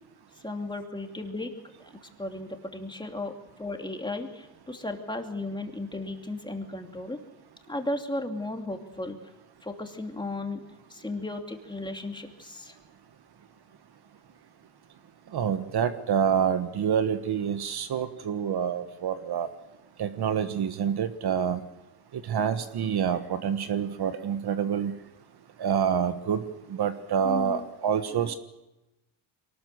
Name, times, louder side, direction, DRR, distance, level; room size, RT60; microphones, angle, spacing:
voice 1, 0.4-1.5 1.8-3.3 3.6-7.2 7.7-9.2 9.6-10.6 10.9-12.8 27.2-27.6 28.2-28.3, left 2 dB, 10° left, 3 dB, 2.8 m, -35 dB
voice 2, 15.3-19.5 20.0-21.6 22.3-24.9 25.6-26.4 26.8-28.3, right 8 dB, 55° right, 10 dB, 1.4 m, -27 dB
23.5 x 19.0 x 6.9 m, 0.96 s
cardioid pair, 100°, 45 cm